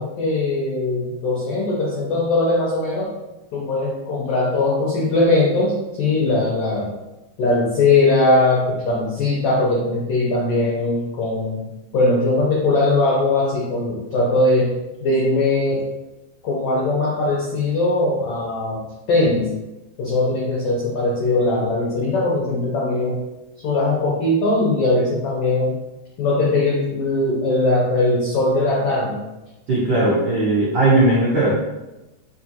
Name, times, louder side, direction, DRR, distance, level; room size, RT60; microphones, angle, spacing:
voice 1, 0.0-3.1 3.5-6.9 7.4-11.6 11.9-14.7 15.0-15.9 16.4-18.8 19.1-19.5 20.0-23.2 23.6-25.7 26.2-29.2, left 2 dB, 85° left, -4 dB, 1.3 m, -20 dB
voice 2, 29.7-31.5, right 2 dB, 85° right, -8 dB, 1.0 m, -17 dB
4.7 x 2.6 x 2.8 m, 1.0 s
omnidirectional pair, 3.6 m